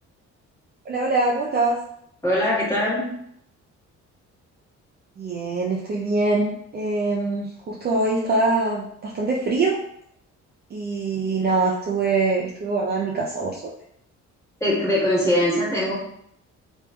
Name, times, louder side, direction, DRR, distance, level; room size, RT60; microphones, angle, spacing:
voice 1, 0.9-1.8 5.2-9.8 10.7-13.6, right 3 dB, 35° right, -3 dB, 0.4 m, -23 dB
voice 2, 2.2-3.2 14.6-15.9, left 1 dB, 10° left, -7 dB, 1.4 m, -21 dB
3.0 x 2.4 x 2.2 m, 0.72 s
cardioid pair, 90°, 30 cm